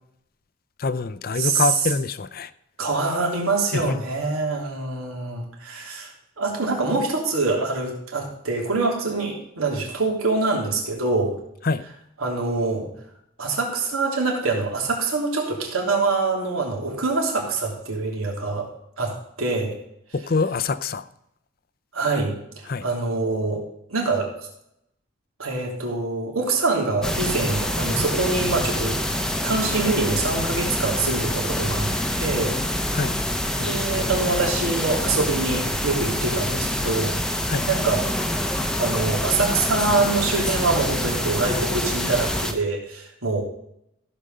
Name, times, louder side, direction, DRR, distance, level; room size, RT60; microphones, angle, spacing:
voice 1, 0.8-2.5 3.7-4.0 11.6-11.8 20.1-21.0 22.7-22.8 32.9-33.2 37.5-37.7, left 4 dB, 45° left, 13 dB, 0.5 m, -25 dB
voice 2, 1.3-1.9 2.8-11.3 12.2-12.9 13.4-18.7 19.0-19.8 21.9-23.6 23.9-24.5 25.4-29.0 29.4-31.9 32.2-32.6 33.6-37.1 37.7-43.4, right 3 dB, 85° right, 0 dB, 3.2 m, -25 dB
sound 1, 27.0-42.5, left 1 dB, 5° left, 0.8 m, -26 dB
15.0 x 5.2 x 6.7 m, 0.76 s
head